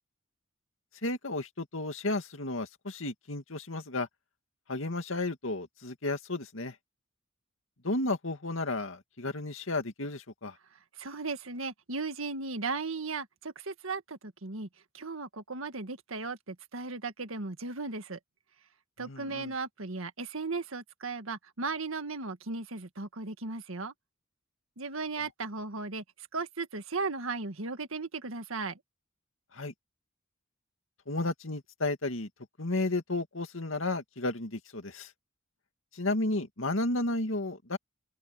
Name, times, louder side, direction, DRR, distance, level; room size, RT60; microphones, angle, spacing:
voice 1, 1.0-4.1 4.7-6.7 7.8-10.5 19.0-19.5 29.5-29.7 31.1-32.3 32.6-35.1 35.9-37.8, left 2 dB, 75° left, 2.3 m, -33 dB
voice 2, 11.0-14.7 14.9-18.2 19.0-23.9 24.8-28.8, right 3 dB, 90° right, 1.8 m, -36 dB
open air
head